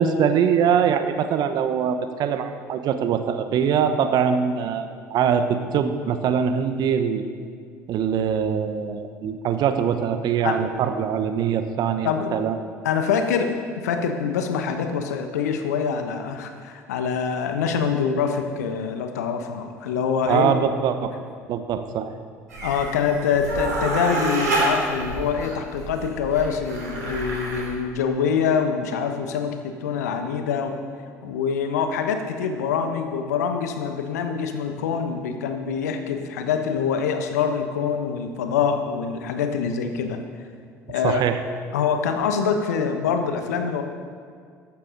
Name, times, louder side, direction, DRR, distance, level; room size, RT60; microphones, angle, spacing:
voice 1, 0.0-7.2 7.9-12.6 20.3-21.1 21.5-22.1 41.0-41.4, right 7 dB, 50° right, 9 dB, 1.0 m, -23 dB
voice 2, 12.8-13.5 13.8-20.5 22.6-30.8 31.2-40.2 40.9-41.2 41.7-43.8, left 6 dB, 75° left, 6 dB, 1.1 m, -25 dB
sound 1, 22.5-27.7, right 2 dB, 85° right, 2.9 m, -28 dB
14.5 x 12.0 x 4.0 m, 2.1 s
figure-of-eight pair, 60°, 9 cm